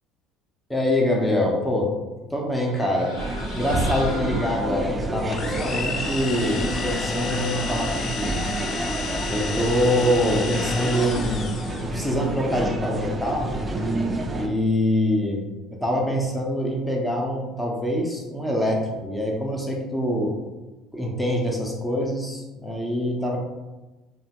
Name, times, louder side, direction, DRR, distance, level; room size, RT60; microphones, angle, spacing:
voice 1, 0.7-1.9 2.3-3.2 3.5-8.5 9.3-13.8 14.3-15.4 15.7-20.3 20.9-23.4, left 1 dB, 5° left, -1 dB, 0.7 m, -25 dB
sound 1, 2.5-5.2, left 1 dB, 75° left, 1.1 m, -38 dB
sound 2, 3.2-14.5, right 2 dB, 25° right, 0.4 m, -29 dB
sound 3, 5.3-12.0, left 4 dB, 45° left, 0.3 m, -32 dB
3.2 x 2.2 x 2.9 m, 1.1 s
hypercardioid pair, 65°, 0 cm